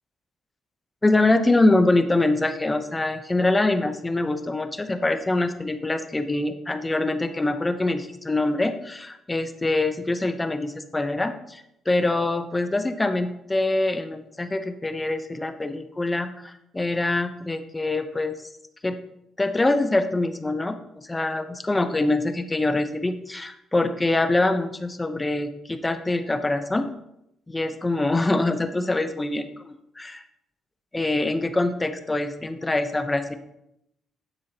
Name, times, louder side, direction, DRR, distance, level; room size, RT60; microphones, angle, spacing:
voice 1, 1.0-18.4 18.8-19.0 19.4-26.9 27.5-30.2 30.9-33.3, left 2 dB, 15° left, 9 dB, 0.8 m, -24 dB
9.9 x 7.3 x 2.9 m, 0.80 s
cardioid pair, 90°, 0 cm